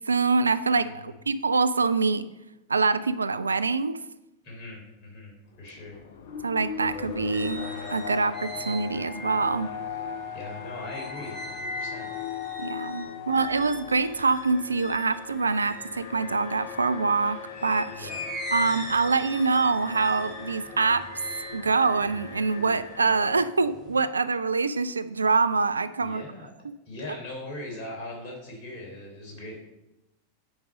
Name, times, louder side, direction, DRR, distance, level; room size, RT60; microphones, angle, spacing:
voice 1, 0.1-2.3 2.7-4.0 6.4-9.7 12.6-18.1 18.5-21.1 21.5-26.2, right 4 dB, 75° right, 13 dB, 0.3 m, -25 dB
voice 2, 0.8-1.2 4.4-5.3 5.6-6.0 10.3-12.1 13.0-13.6 17.9-18.2 26.0-26.5 26.9-29.6, left 2 dB, 40° left, -1 dB, 3.4 m, -40 dB
Alarm, 5.6-23.5, left 7 dB, 55° left, 0.8 m, -39 dB
sound 1, 6.8-17.0 17.5-23.0 23.4-24.0, left 1 dB, 15° left, 2.9 m, -40 dB
9.5 x 5.2 x 5.0 m, 0.96 s
figure-of-eight pair, 90°, 0 cm